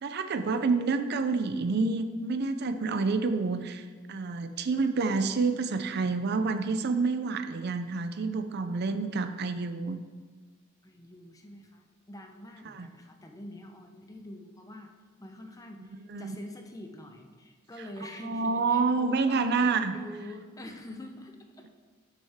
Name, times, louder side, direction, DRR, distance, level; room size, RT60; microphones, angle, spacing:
voice 1, 0.0-10.0 12.7-12.9 16.1-16.4 18.2-19.9, right 4 dB, 50° right, 9 dB, 0.5 m, -28 dB
voice 2, 10.8-14.9 15.2-21.7, left 1 dB, 15° left, 3 dB, 0.7 m, -45 dB
12.0 x 6.3 x 3.5 m, 1.5 s
head